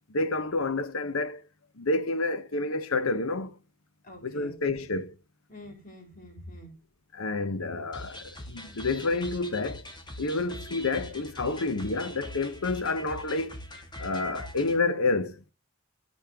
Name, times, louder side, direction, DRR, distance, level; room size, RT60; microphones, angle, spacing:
voice 1, 0.1-1.4 1.8-3.6 4.2-5.1 7.1-9.9 10.2-13.6 14.0-15.4, left 3 dB, 90° left, 0.9 m, -29 dB
voice 2, 4.0-4.8 5.5-6.7, equal, 40° left, 3.9 m, -47 dB
sound 1, 7.9-14.8, left 1 dB, 20° left, 1.8 m, -42 dB
14.0 x 5.2 x 3.5 m
head